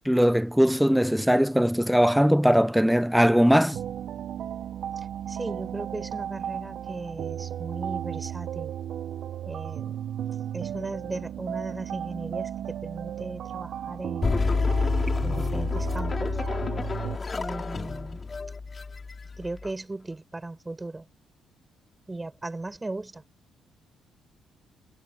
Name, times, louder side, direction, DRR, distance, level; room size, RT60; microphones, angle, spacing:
voice 1, 0.1-3.8, equal, ahead, 0.4 m, -20 dB
sound 1, 3.7-17.2, right 10 dB, 65° right, 0.7 m, -35 dB
voice 2, 5.0-8.7 9.5-10.0 10.5-14.5 15.2-16.4 17.3-18.2 19.4-21.1 22.1-23.2, right 2 dB, 15° right, 7.0 m, -37 dB
sound 2, 14.2-19.7, left 4 dB, 30° left, 2.5 m, -28 dB
cardioid pair, 95°, 0 cm